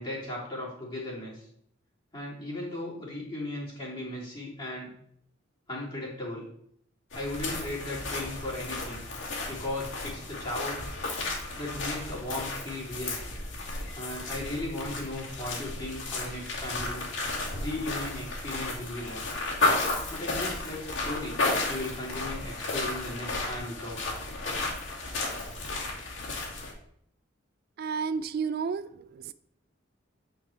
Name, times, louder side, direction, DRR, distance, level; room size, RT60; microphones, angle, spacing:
voice 1, 0.0-1.5 2.1-4.9 5.7-6.4 7.1-9.0 9.5-11.0 11.5-13.2 13.9-17.1 17.6-19.2 20.1-21.4 21.7-24.2, left 1 dB, 25° left, -6 dB, 3.2 m, -36 dB
sound 1, 7.1-26.7, left 2 dB, 65° left, 2.4 m, -33 dB
voice 2, 27.8-29.3, right 5 dB, 50° right, 14 dB, 0.3 m, -32 dB
9.0 x 4.7 x 4.5 m, 0.69 s
head